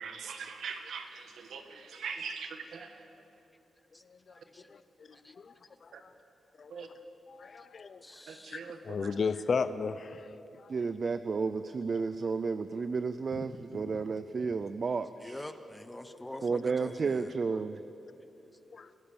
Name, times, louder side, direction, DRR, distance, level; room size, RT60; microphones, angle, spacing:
voice 1, 0.0-3.1 5.9-6.0 6.7-6.9 8.3-9.2, right 5 dB, 80° right, 6 dB, 1.9 m, -42 dB
voice 2, 4.3-4.7 5.2-5.3 7.4-7.7 8.0-8.6 15.2-17.3, left 1 dB, 10° left, 9 dB, 0.8 m, -46 dB
voice 3, 7.3-8.0 8.5-8.6 8.8-10.3 10.6-10.7 13.3-13.9 18.7-18.9, left 5 dB, 45° left, 14 dB, 0.6 m, -34 dB
voice 4, 10.7-15.4 16.4-17.8, right 4 dB, 40° right, 12 dB, 0.5 m, -32 dB
28.0 x 16.5 x 7.0 m, 3.0 s
wide cardioid pair, 165°, 0 cm